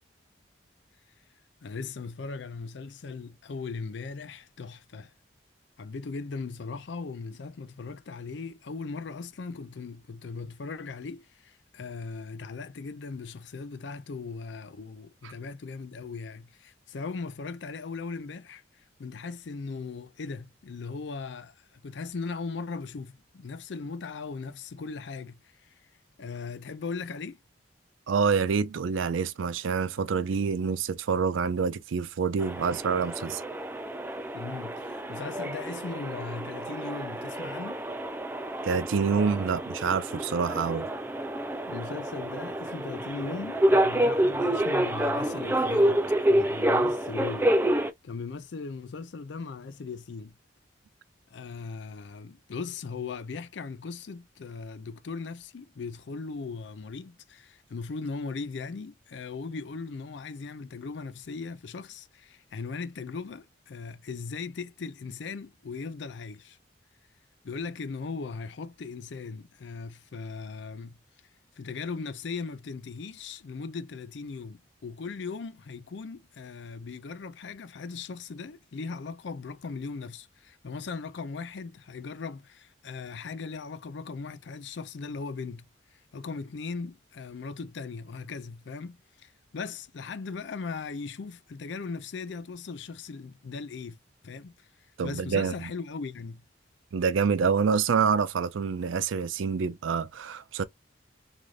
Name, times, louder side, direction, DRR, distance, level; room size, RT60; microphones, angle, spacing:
voice 1, 1.6-5.1 5.8-25.8 26.2-27.4 34.3-37.8 41.6-47.5 48.0-50.4 51.3-66.6 67.4-71.0 71.6-85.7 85.9-94.0 94.2-94.7 95.0-96.4, left 4 dB, 70° left, 0.4 m, -38 dB
voice 2, 28.1-33.4 38.6-40.9 95.0-95.7 96.9-100.6, right 5 dB, 90° right, 0.4 m, -27 dB
sound 1, 32.4-47.9, right 1 dB, 10° right, 0.3 m, -28 dB
3.3 x 2.5 x 2.4 m
head